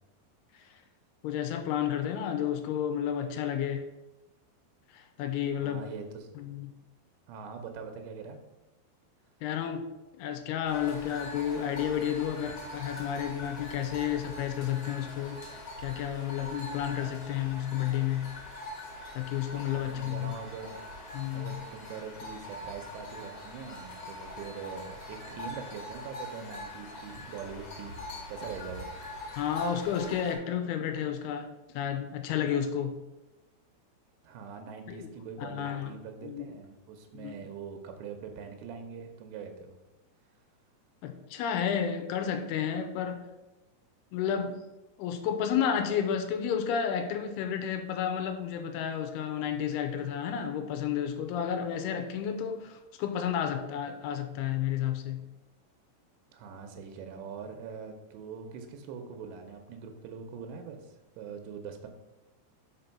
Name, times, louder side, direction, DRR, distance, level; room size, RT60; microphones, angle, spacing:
voice 1, 1.2-3.9 4.9-5.9 6.4-6.7 9.4-9.8 10.2-15.4 15.8-18.3 19.2-20.3 21.1-21.5 29.4-31.5 31.7-33.0 34.9-35.1 35.4-35.9 36.2-36.5 37.1-37.4 41.0-43.3 44.1-44.6 45.0-55.2, left 9 dB, 85° left, 6 dB, 2.4 m, -31 dB
voice 2, 5.6-6.5 7.3-8.4 19.7-20.8 21.3-28.0 28.3-28.9 34.2-39.7 56.3-61.9, right 6 dB, 85° right, 5 dB, 2.9 m, -43 dB
sound 1, 10.7-30.3, left 1 dB, 60° left, 1.6 m, -43 dB
5.5 x 5.2 x 5.7 m, 1.0 s
omnidirectional pair, 5.0 m